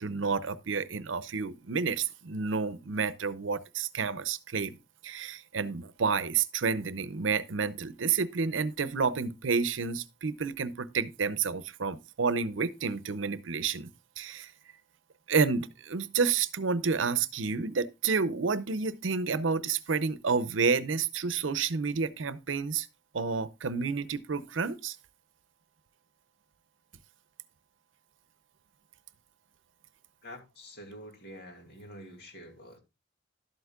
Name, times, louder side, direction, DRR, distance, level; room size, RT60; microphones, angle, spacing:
voice 1, 0.0-4.8 5.0-13.9 14.2-14.5 15.3-22.9 23.1-25.0, right 5 dB, 85° right, 0.7 m, -30 dB
voice 2, 30.2-32.8, equal, 55° left, 2.6 m, -47 dB
12.0 x 8.0 x 2.4 m
head